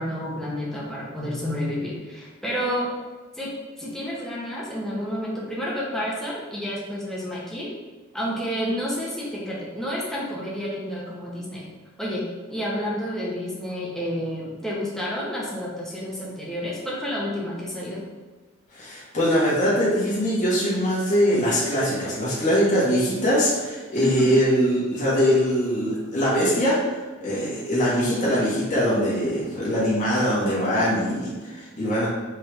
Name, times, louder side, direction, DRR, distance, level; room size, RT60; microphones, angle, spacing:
voice 1, 0.0-2.9 3.4-7.7 8.1-11.7 12.0-18.1 24.0-24.3, equal, ahead, -5 dB, 0.9 m, -30 dB
voice 2, 18.7-32.1, equal, 35° left, -9 dB, 1.4 m, -22 dB
4.4 x 3.3 x 3.4 m, 1.3 s
head